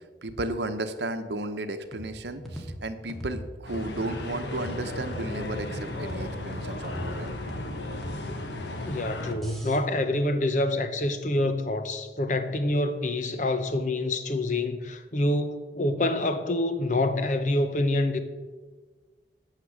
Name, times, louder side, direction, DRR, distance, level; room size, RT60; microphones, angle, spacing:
voice 1, 0.0-7.3, right 2 dB, 75° right, 0.9 m, -34 dB
sound 1, 1.9-9.8, equal, ahead, 1.7 m, -41 dB
sound 2, 3.7-9.3, left 2 dB, 85° left, 1.3 m, -35 dB
voice 2, 8.9-18.2, left 1 dB, 45° left, 0.9 m, -26 dB
9.9 x 6.7 x 7.3 m
head